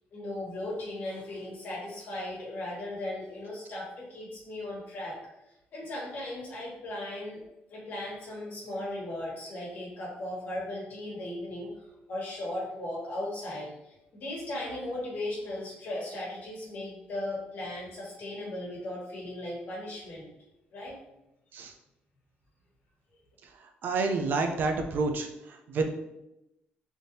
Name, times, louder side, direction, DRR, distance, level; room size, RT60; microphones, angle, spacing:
voice 1, 0.1-5.2 5.7-7.4 7.7-20.3 20.7-20.9, left 1 dB, 55° left, -4 dB, 1.4 m, -37 dB
voice 2, 23.8-25.9, right 3 dB, 60° right, 5 dB, 0.4 m, -29 dB
3.5 x 2.7 x 2.6 m, 0.89 s
cardioid pair, 130°, 4 cm